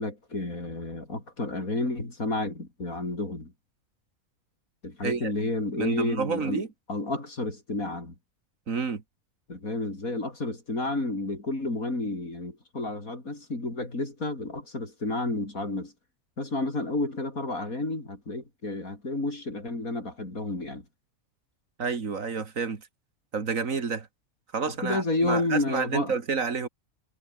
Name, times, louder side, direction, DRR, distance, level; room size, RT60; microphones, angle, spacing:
voice 1, 0.0-3.5 4.8-8.1 9.5-15.9 16.4-20.8 24.8-26.1, left 2 dB, 80° left, 6.2 m, -31 dB
voice 2, 5.8-6.7 8.7-9.0 21.8-22.8 23.3-24.1 24.5-26.7, right 5 dB, 70° right, 2.3 m, -29 dB
omnidirectional pair, 1.5 m